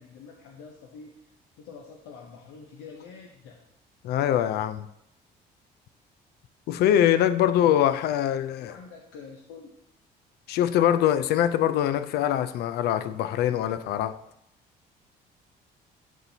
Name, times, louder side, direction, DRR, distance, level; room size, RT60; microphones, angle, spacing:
voice 1, 0.0-3.7 8.6-9.7, left 5 dB, 90° left, 0 dB, 0.8 m, -46 dB
voice 2, 4.0-4.9 6.7-8.7 10.5-14.2, left 11 dB, 70° left, 12 dB, 0.4 m, -23 dB
11.0 x 4.5 x 2.7 m, 0.79 s
cardioid pair, 110°, 17 cm